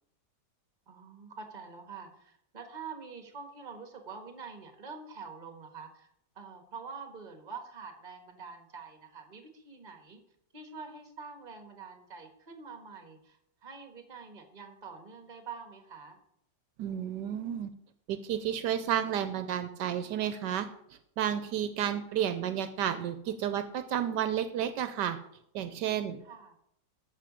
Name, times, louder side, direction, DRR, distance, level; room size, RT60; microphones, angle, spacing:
voice 1, 0.9-6.1 6.3-10.2 10.5-16.2 26.2-26.6, right 5 dB, 30° right, 6 dB, 1.4 m, -46 dB
voice 2, 16.8-17.7 18.1-20.7 21.2-25.2 25.5-26.2, right 9 dB, 80° right, 11 dB, 1.2 m, -31 dB
13.5 x 5.7 x 5.0 m, 0.75 s
omnidirectional pair, 1.9 m